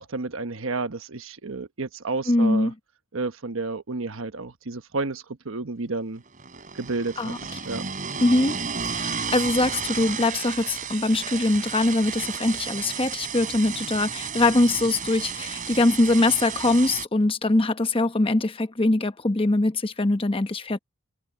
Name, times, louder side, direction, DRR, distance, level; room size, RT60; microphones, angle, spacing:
voice 1, 0.0-2.7 3.1-6.2 6.7-7.3 7.6-7.8, right 3 dB, 70° right, 1.1 m, -31 dB
voice 2, 2.3-2.7 7.2-7.4 8.2-8.6 8.8-20.8, left 2 dB, 25° left, 1.0 m, -22 dB
sound 1, 6.3-17.1, right 6 dB, 40° right, 4.9 m, -33 dB
head